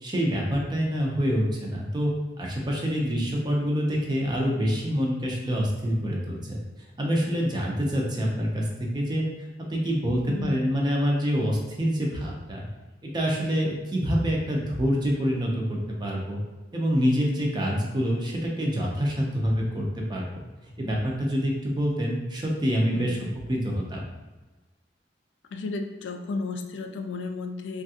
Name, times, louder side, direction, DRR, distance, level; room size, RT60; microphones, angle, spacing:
voice 1, 0.0-2.1 2.4-6.6 7.0-9.3 9.6-12.7 13.0-16.4 16.7-20.2 20.8-23.2 23.5-24.0, equal, 25° right, -1 dB, 0.5 m, -26 dB
voice 2, 10.3-10.6 22.9-23.3 25.5-27.8, left 3 dB, 80° left, 5 dB, 0.3 m, -33 dB
3.3 x 2.3 x 2.7 m, 1.2 s
head